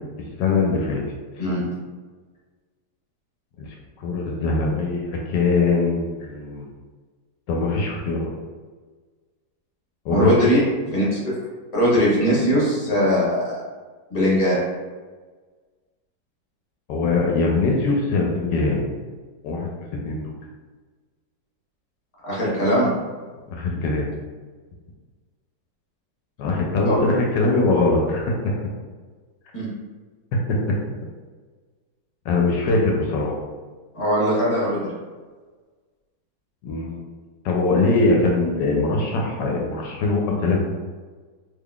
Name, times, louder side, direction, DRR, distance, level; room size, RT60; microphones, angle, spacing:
voice 1, 0.4-1.0 3.6-3.7 4.0-6.6 7.5-8.3 10.0-10.5 16.9-18.8 19.4-20.3 23.5-24.1 26.4-28.6 30.5-30.8 32.2-33.3 36.6-37.1 37.4-40.7, left 3 dB, 80° left, 0 dB, 1.2 m, -22 dB
voice 2, 10.1-10.6 10.8-11.3 11.7-13.6 14.1-14.6 22.2-22.9 23.7-23.8 26.8-27.0 29.5-29.7 33.9-34.9, equal, 20° left, -7 dB, 1.3 m, -20 dB
3.6 x 3.3 x 2.3 m, 1.4 s
omnidirectional pair, 1.9 m